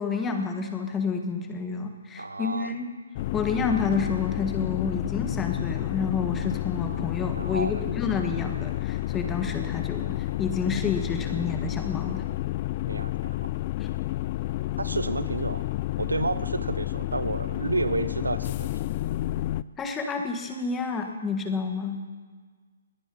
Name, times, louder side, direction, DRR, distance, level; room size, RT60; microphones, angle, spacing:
voice 1, 0.0-2.9 3.3-12.2 19.8-22.0, left 5 dB, 15° left, 5 dB, 1.5 m, -29 dB
voice 2, 2.2-2.8 7.3-7.8 12.9-13.5 14.8-15.6 16.0-18.7, right 3 dB, 85° right, 14 dB, 0.5 m, -30 dB
sound 1, 3.1-19.6, left 17 dB, 35° left, 0.3 m, -30 dB
20.5 x 9.3 x 5.5 m, 1.5 s
figure-of-eight pair, 135°, 0 cm